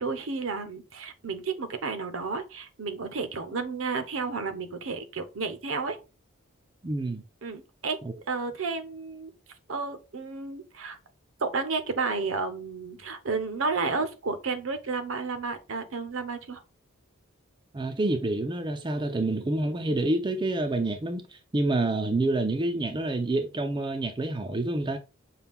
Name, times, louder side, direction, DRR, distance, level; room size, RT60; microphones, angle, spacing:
voice 1, 0.0-6.0 7.4-8.0 8.3-9.3 9.7-11.0 11.4-16.6, right 4 dB, 60° right, 0.7 m, -32 dB
voice 2, 6.8-7.2 8.0-8.1 17.7-25.0, right 2 dB, 20° right, 0.4 m, -28 dB
5.7 x 2.3 x 3.5 m
head